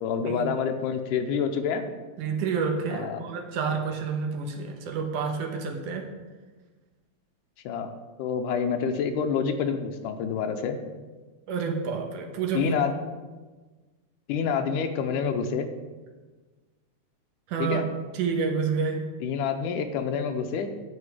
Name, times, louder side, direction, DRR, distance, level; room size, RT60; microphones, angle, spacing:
voice 1, 0.0-1.8 2.9-3.2 7.7-7.9 8.2-10.8 12.5-12.9 14.3-15.7 17.6-17.9 19.2-20.7, left 6 dB, 85° left, 6 dB, 2.3 m, -27 dB
voice 2, 2.2-6.1 11.5-12.8 17.5-17.8 18.1-19.1, right 5 dB, 80° right, 3 dB, 2.6 m, -29 dB
9.7 x 8.1 x 4.9 m, 1.3 s
omnidirectional pair, 3.7 m